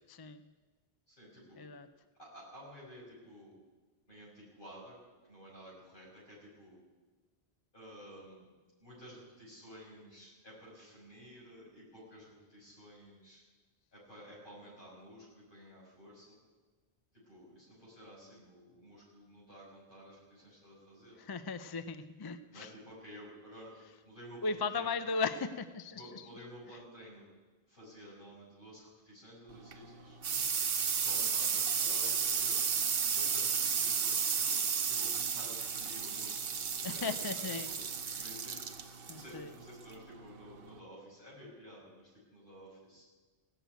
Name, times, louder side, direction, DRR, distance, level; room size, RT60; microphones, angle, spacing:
voice 1, 0.1-0.4 1.6-1.9 21.2-22.7 24.4-26.2 36.8-37.7 38.1-38.2 39.1-39.5, left 4 dB, 35° left, 12 dB, 0.4 m, -37 dB
voice 2, 1.1-1.6 2.1-3.6 4.1-5.0 5.2-6.8 7.7-8.5 8.8-13.4 13.9-16.4 17.1-21.2 22.5-25.0 25.9-27.2 27.7-30.2 31.0-32.6 32.9-37.3 37.6-43.0, equal, 55° left, -5 dB, 6.2 m, -53 dB
sound 1, 29.5-40.8, right 6 dB, 60° right, 1.0 m, -33 dB
17.0 x 6.7 x 9.1 m, 1.3 s
omnidirectional pair, 1.1 m